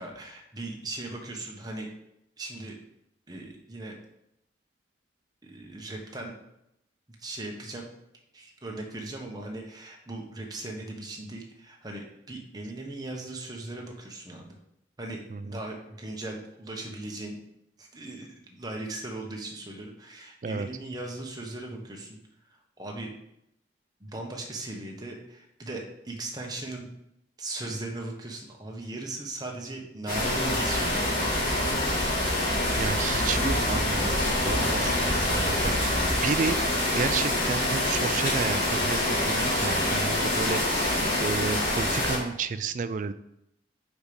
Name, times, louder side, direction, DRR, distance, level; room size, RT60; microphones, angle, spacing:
voice 1, 0.0-1.9 2.4-2.7 3.3-3.9 5.4-6.3 7.2-7.9 8.3-14.6 15.0-17.4 17.8-22.2 22.8-23.1 24.0-26.9 27.4-31.8 34.8-36.2, right 2 dB, 20° right, 0 dB, 1.0 m, -38 dB
sound 1, 30.1-42.2, left 1 dB, 50° left, 2.6 m, -26 dB
voice 2, 32.8-36.6 36.9-43.1, right 5 dB, 45° right, 12 dB, 0.3 m, -31 dB
5.2 x 5.1 x 5.0 m, 0.82 s
head